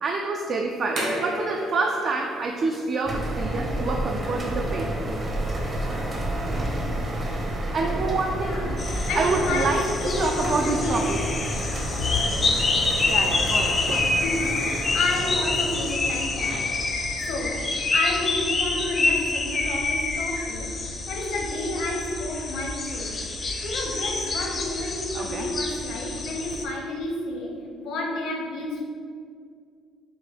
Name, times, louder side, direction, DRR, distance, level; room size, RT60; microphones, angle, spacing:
voice 1, 0.0-5.0 7.7-8.6 9.2-9.8 10.2-11.2 13.1-14.1 25.1-25.5, right 3 dB, 45° right, 1 dB, 0.3 m, -27 dB
sound 1, 0.7-7.3, right 1 dB, 65° right, 1.3 m, -37 dB
sound 2, 3.0-18.5, right 1 dB, 30° right, 0.7 m, -30 dB
voice 2, 8.4-11.1 12.7-12.8 14.0-23.1 23.6-27.5 27.8-28.8, left 2 dB, 70° left, 0 dB, 0.8 m, -31 dB
sound 3, 8.8-26.6, left 3 dB, 35° left, 0.5 m, -27 dB
6.2 x 2.2 x 3.4 m, 2.2 s
cardioid pair, 115°, 0 cm